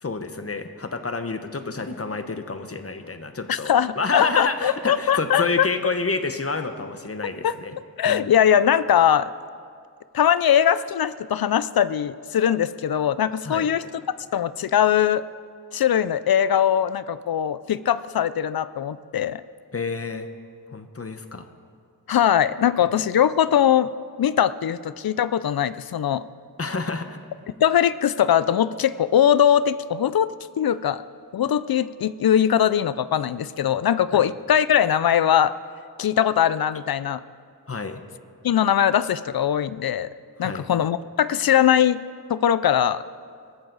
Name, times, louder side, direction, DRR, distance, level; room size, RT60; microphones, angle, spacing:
voice 1, 0.0-7.8 8.0-8.3 13.4-13.7 19.7-20.3 20.7-21.5 26.6-27.2 34.1-34.3 37.7-38.0 40.4-40.6, left 4 dB, 40° left, 8 dB, 1.0 m, -29 dB
voice 2, 3.5-5.7 7.4-7.5 8.0-9.3 10.1-13.8 14.3-15.2 15.7-19.4 22.1-23.9 24.2-26.2 27.6-31.0 31.3-35.5 36.0-37.2 38.4-40.1 40.4-42.0 42.3-43.0, left 9 dB, 70° left, 15 dB, 0.5 m, -21 dB
21.5 x 14.0 x 4.0 m, 2.1 s
wide cardioid pair, 80°, 37 cm